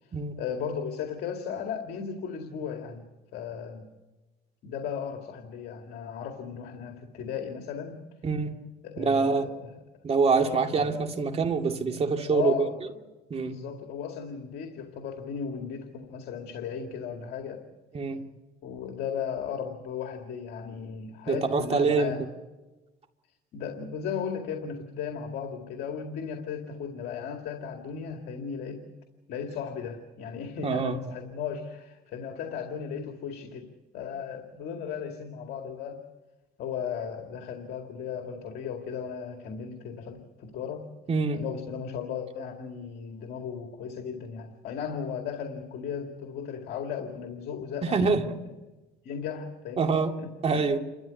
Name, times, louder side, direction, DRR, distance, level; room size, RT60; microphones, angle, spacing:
voice 1, 0.0-3.1 3.3-3.9 4.6-8.0 8.8-9.8 10.4-11.1 12.3-12.7 13.4-17.6 18.6-22.3 23.5-28.8 29.3-33.7 33.9-36.0 36.6-40.9 41.3-48.4 49.0-50.7, left 7 dB, 70° left, 4 dB, 2.3 m, -36 dB
voice 2, 9.0-9.5 10.0-12.7 13.3-13.6 17.9-18.2 21.3-22.1 30.6-31.0 41.1-41.4 47.8-48.2 49.8-50.1 50.4-50.8, right 4 dB, 35° right, 4 dB, 2.3 m, -25 dB
29.0 x 13.5 x 9.6 m, 1.1 s
cardioid pair, 110°, 17 cm